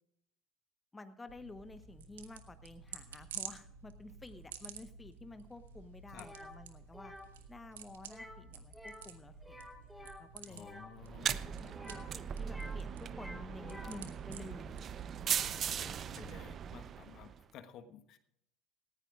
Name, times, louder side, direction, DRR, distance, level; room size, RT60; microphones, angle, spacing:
voice 1, 0.9-7.1 7.5-10.7 11.3-14.7, left 2 dB, 20° left, 9 dB, 1.1 m, -51 dB
sound 1, 1.3-16.5, right 7 dB, 80° right, 1.3 m, -52 dB
sound 2, 6.2-6.5 6.9-7.3 8.0-8.4 8.7-9.1 9.4-10.9 11.7-12.8 13.1-14.0, left 1 dB, 5° right, 3.3 m, -50 dB
voice 2, 10.5-11.5 15.8-18.2, left 9 dB, 55° left, 8 dB, 1.3 m, -53 dB
sound 3, 11.0-17.4, right 8 dB, 45° right, 0.7 m, -39 dB
18.5 x 15.5 x 2.4 m, 0.74 s
hypercardioid pair, 70°, 0 cm